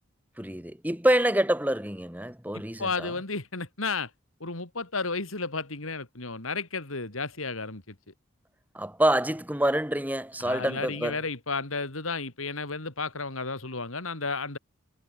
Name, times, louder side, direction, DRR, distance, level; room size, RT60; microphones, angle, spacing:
voice 1, 0.4-3.1 8.7-11.2, right 1 dB, 10° right, 2.1 m, -26 dB
voice 2, 2.8-4.1 4.4-7.9 10.4-14.6, left 4 dB, 90° left, 3.7 m, -32 dB
head